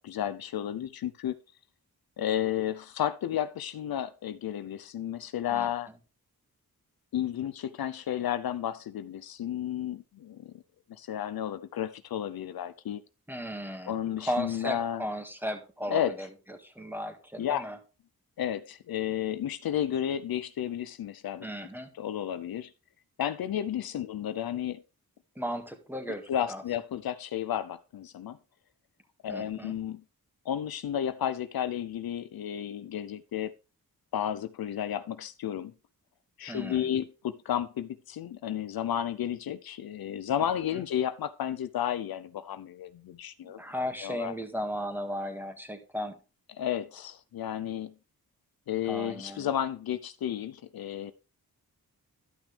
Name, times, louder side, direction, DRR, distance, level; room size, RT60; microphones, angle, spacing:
voice 1, 0.0-1.3 2.2-5.9 7.1-10.6 10.9-13.0 13.9-15.0 15.9-16.1 17.4-17.6 18.4-21.5 22.0-22.7 23.2-24.8 26.3-28.4 29.2-30.0 30.5-33.5 34.1-35.7 36.4-43.6 44.0-44.3 46.6-47.9 48.7-51.1, left 10 dB, 75° left, 13 dB, 0.6 m, -32 dB
voice 2, 13.3-16.3 16.6-17.8 21.4-21.9 24.0-24.1 25.3-26.6 29.3-29.7 36.5-36.9 43.4-46.2 48.8-49.5, equal, 5° right, 5 dB, 1.8 m, -36 dB
12.5 x 6.0 x 3.3 m, 0.32 s
cardioid pair, 70°, 37 cm